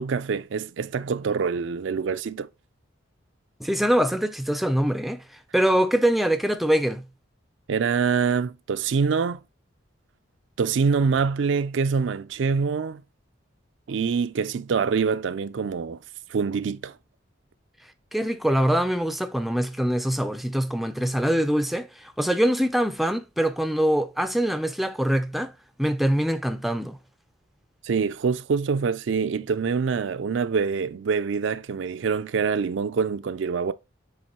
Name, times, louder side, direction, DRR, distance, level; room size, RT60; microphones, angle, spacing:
voice 1, 0.0-2.5 7.7-9.4 10.6-13.0 13.9-16.0 16.3-17.0 27.8-33.7, right 5 dB, 65° right, 0.4 m, -25 dB
voice 2, 3.6-5.2 5.5-7.0 18.1-25.5 25.8-27.0, equal, ahead, 0.4 m, -23 dB
7.5 x 3.1 x 4.2 m
head